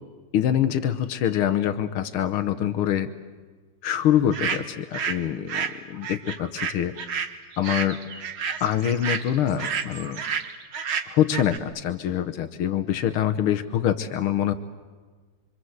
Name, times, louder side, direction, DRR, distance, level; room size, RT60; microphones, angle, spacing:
voice 1, 0.3-3.1 3.8-5.6 5.9-6.9 7.6-8.0 8.6-10.2 11.1-14.5, left 10 dB, 85° left, 9 dB, 1.9 m, -24 dB
sound 1, 4.3-5.2 5.5-11.6, right 6 dB, 70° right, 2.4 m, -30 dB
26.5 x 25.5 x 8.0 m, 1.5 s
omnidirectional pair, 2.4 m